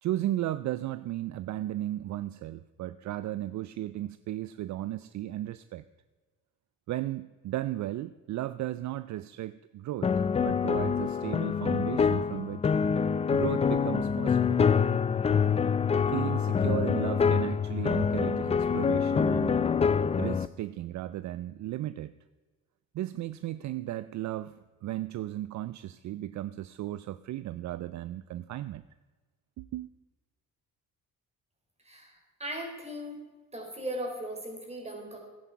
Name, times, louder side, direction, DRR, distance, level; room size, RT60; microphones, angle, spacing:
voice 1, 0.0-5.8 6.9-12.7 13.3-14.6 16.1-19.6 20.2-22.2 22.9-28.8 29.6-29.9, right 14 dB, 60° right, 15 dB, 0.5 m, -35 dB
sound 1, 10.0-20.5, left 6 dB, 20° left, 0.3 m, -26 dB
voice 2, 31.8-33.2 33.5-35.2, right 1 dB, 20° right, 1 dB, 4.0 m, -38 dB
14.0 x 10.0 x 4.6 m, 1.3 s
cardioid pair, 110°, 33 cm